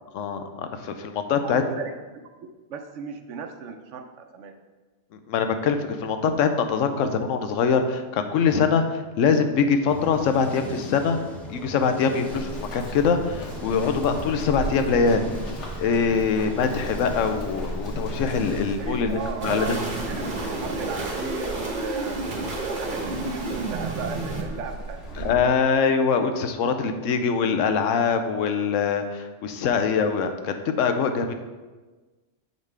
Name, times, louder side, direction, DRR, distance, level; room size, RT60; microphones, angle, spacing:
voice 1, 0.2-1.6 5.1-11.2 11.5-15.3 15.8-19.8 25.2-31.3, left 5 dB, 85° left, 7 dB, 1.0 m, -23 dB
voice 2, 1.4-2.2 2.7-4.5 7.0-7.1 18.8-22.2 22.6-25.4, right 5 dB, 75° right, 6 dB, 0.9 m, -36 dB
sound 1, 9.9-18.7, left 1 dB, ahead, 0.5 m, -39 dB
Run, 12.3-25.4, equal, 70° left, 1.5 m, -37 dB
sound 2, 19.4-24.4, right 2 dB, 45° right, 1.1 m, -30 dB
7.2 x 5.3 x 3.3 m, 1.3 s
omnidirectional pair, 1.3 m